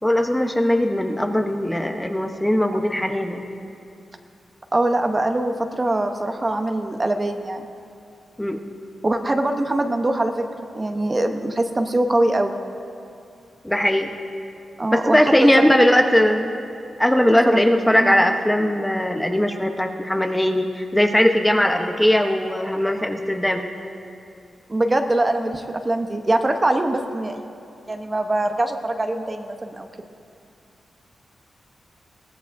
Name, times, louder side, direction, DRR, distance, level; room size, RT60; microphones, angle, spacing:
voice 1, 0.0-3.4 8.4-8.6 13.6-14.1 14.9-16.5 17.0-23.6, left 1 dB, 5° left, 4 dB, 0.8 m, -19 dB
voice 2, 4.7-7.7 9.0-10.5 10.7-12.6 14.8-15.7 17.5-17.6 18.0-18.2 24.7-27.4 27.9-30.1, right 1 dB, 25° right, 5 dB, 0.8 m, -23 dB
22.0 x 17.0 x 2.6 m, 2.5 s
wide cardioid pair, 100°, 0 cm